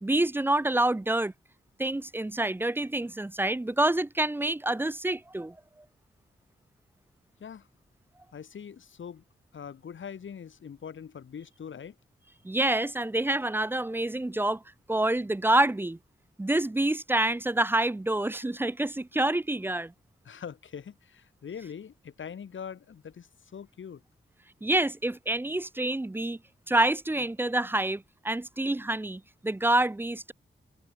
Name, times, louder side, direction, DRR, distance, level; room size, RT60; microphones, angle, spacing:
voice 1, 0.0-1.3 1.8-5.6 12.4-14.6 14.9-16.0 16.4-19.9 24.6-26.4 26.7-30.3, right 1 dB, 10° right, 0.5 m, -27 dB
voice 2, 8.3-9.2 9.5-12.0 20.3-24.0, left 7 dB, 70° left, 2.0 m, -42 dB
wide cardioid pair, 170°, 20 cm